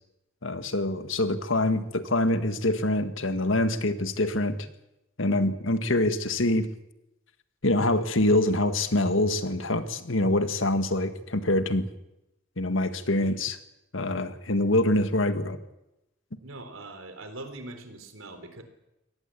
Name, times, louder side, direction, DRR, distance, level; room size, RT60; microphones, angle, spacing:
voice 1, 0.4-4.6 5.2-6.7 7.6-11.8 12.6-13.6 13.9-15.6, left 1 dB, 75° left, 10 dB, 1.8 m, -25 dB
voice 2, 16.4-18.6, right 2 dB, 85° right, 8 dB, 3.8 m, -42 dB
24.0 x 18.0 x 8.6 m, 0.91 s
head